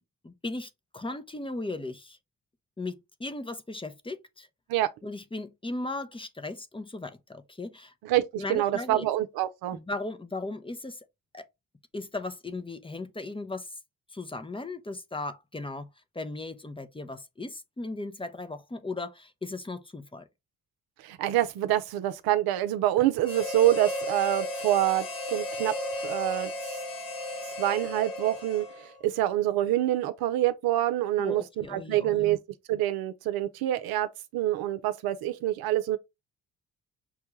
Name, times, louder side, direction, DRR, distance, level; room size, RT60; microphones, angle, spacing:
voice 1, 0.2-2.2 2.8-4.5 5.0-7.9 8.4-9.1 9.7-11.0 11.3-11.5 11.9-13.7 14.1-15.9 16.1-20.2 31.2-32.3, left 2 dB, 15° left, 0.7 m, -37 dB
voice 2, 8.0-9.8 21.0-25.7 26.0-26.5 27.6-32.4 32.7-36.0, right 13 dB, 75° right, 0.6 m, -26 dB
Harmonica, 23.2-29.0, left 1 dB, 65° left, 1.2 m, -34 dB
6.0 x 2.2 x 3.1 m
hypercardioid pair, 50°, 36 cm